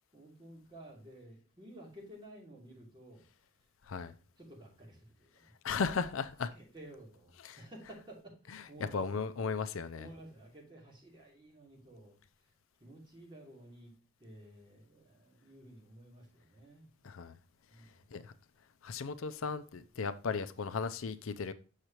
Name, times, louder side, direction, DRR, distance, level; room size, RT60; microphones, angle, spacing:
voice 1, 0.1-3.3 4.4-5.5 6.5-9.2 9.9-12.2 12.8-13.9 14.2-16.9 17.7-18.2, right 1 dB, 25° right, 2.9 m, -53 dB
voice 2, 5.6-6.5 7.4-7.6 8.5-10.1 17.0-17.4 18.1-18.3 18.8-21.5, left 5 dB, 70° left, 0.5 m, -36 dB
6.5 x 6.5 x 2.9 m
head